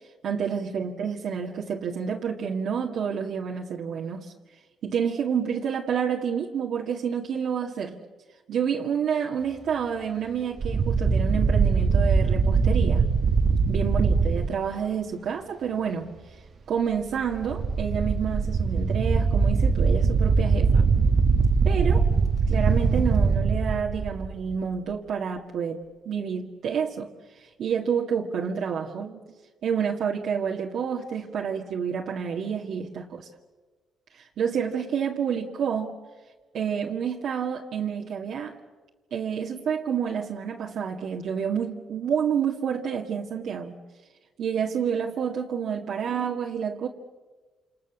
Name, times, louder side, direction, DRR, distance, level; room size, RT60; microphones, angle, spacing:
voice 1, 0.2-4.3 4.8-8.0 8.5-13.1 13.7-16.1 16.7-20.8 21.6-22.1 22.5-27.1 27.4-29.2 29.6-33.3 34.1-35.9 36.5-38.5 39.1-43.8 44.4-46.9, right 7 dB, 70° right, -2 dB, 2.0 m, -29 dB
sound 1, 10.6-14.5 17.3-24.6, right 4 dB, 50° right, 1.4 m, -22 dB
28.0 x 27.5 x 7.3 m, 1.3 s
cardioid pair, 90°, 0 cm